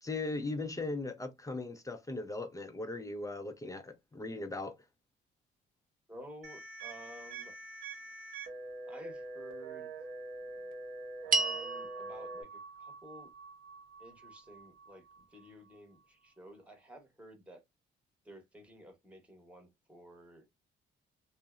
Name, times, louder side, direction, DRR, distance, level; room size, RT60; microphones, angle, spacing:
voice 1, 0.0-4.7, left 2 dB, 15° left, 0.5 m, -38 dB
voice 2, 6.1-7.6 8.9-9.9 11.2-13.3 14.0-17.6 18.2-20.5, right 1 dB, 5° right, 0.9 m, -53 dB
sound 1, 6.4-12.4, right 3 dB, 90° right, 0.8 m, -44 dB
sound 2, 11.3-15.8, right 4 dB, 45° right, 0.6 m, -37 dB
2.7 x 2.0 x 2.3 m
cardioid pair, 90°, 20 cm